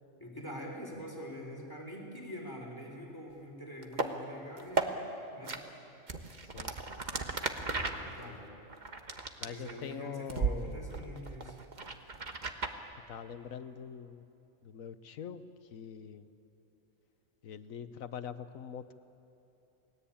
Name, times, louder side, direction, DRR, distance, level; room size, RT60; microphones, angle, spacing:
voice 1, 0.2-5.0 5.3-5.6 7.6-8.6 9.4-11.6, equal, 15° left, 1 dB, 4.0 m, -45 dB
sound 1, 3.8-4.1 4.6-4.9 5.4-5.6 6.1-9.9 10.3-10.5 10.9-12.8, right 4 dB, 35° right, 1.4 m, -35 dB
voice 2, 6.4-6.7 8.0-8.4 9.4-10.8 13.1-14.2 14.6-15.4 15.7-16.3 17.4-18.9, left 8 dB, 75° left, 11 dB, 1.3 m, -43 dB
29.0 x 20.0 x 8.6 m, 2.9 s
omnidirectional pair, 1.4 m